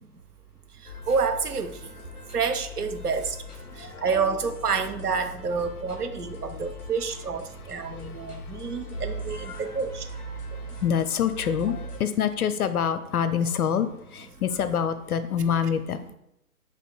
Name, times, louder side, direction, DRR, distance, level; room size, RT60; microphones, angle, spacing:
sound 1, 0.8-12.0, left 1 dB, 15° left, 1.1 m, -40 dB
voice 1, 1.1-1.8 2.3-3.4 3.8-10.0, right 5 dB, 85° right, 8 dB, 0.6 m, -28 dB
voice 2, 3.7-4.1 6.5-6.6 7.6-9.0 9.5-9.6 10.5-16.1, left 8 dB, 75° left, 11 dB, 0.5 m, -27 dB
6.7 x 2.9 x 2.3 m, 0.82 s
figure-of-eight pair, 135°, 45 cm